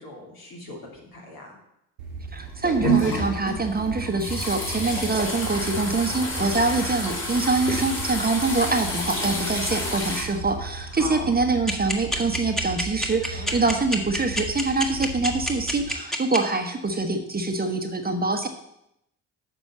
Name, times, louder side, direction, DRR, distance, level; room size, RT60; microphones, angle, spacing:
voice 1, 0.0-1.6 10.9-11.3 13.3-13.7, left 1 dB, 60° left, -1 dB, 3.0 m, -39 dB
sound 1, 2.0-15.9, right 3 dB, 80° right, 1.5 m, -37 dB
voice 2, 2.3-18.5, right 3 dB, 20° right, 6 dB, 1.1 m, -25 dB
sound 2, 2.4-10.2, equal, 30° left, 3.6 m, -29 dB
sound 3, 11.7-16.4, equal, ahead, 1.6 m, -26 dB
7.1 x 5.4 x 7.4 m, 0.81 s
hypercardioid pair, 50°, 40 cm